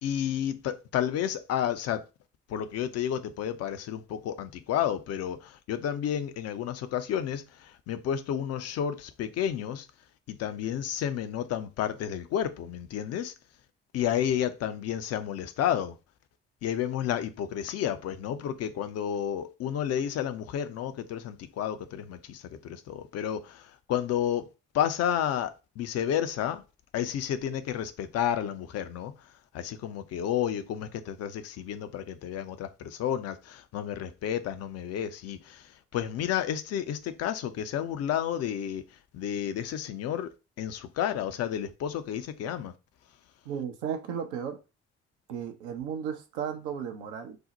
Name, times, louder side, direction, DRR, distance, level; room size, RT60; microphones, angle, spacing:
voice 1, 0.0-2.0 2.5-9.9 10.3-13.3 13.9-15.9 16.6-24.5 24.7-26.6 26.9-29.1 29.5-38.8 39.1-42.7, left 10 dB, 50° left, 0.5 m, -31 dB
voice 2, 43.5-44.6 45.3-47.4, right 8 dB, 75° right, 0.6 m, -34 dB
2.6 x 2.1 x 3.9 m
figure-of-eight pair, 45°, 34 cm